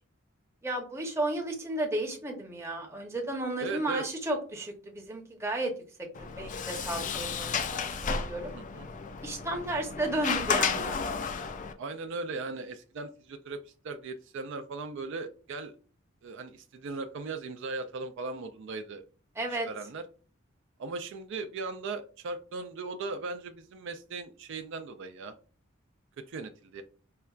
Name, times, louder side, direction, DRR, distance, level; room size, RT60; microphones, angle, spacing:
voice 1, 0.6-5.7 6.2-7.7 8.0-8.5 9.2-11.0 19.3-19.7, right 1 dB, 15° right, 1 dB, 0.8 m, -33 dB
voice 2, 3.6-4.1 8.5-8.9 11.8-15.7 16.2-19.0 19.5-20.0 20.8-25.4 26.2-26.8, right 3 dB, 65° right, 7 dB, 0.4 m, -38 dB
Sliding door, 6.1-11.7, left 6 dB, 40° left, 0.4 m, -33 dB
5.5 x 2.2 x 2.3 m, 0.38 s
head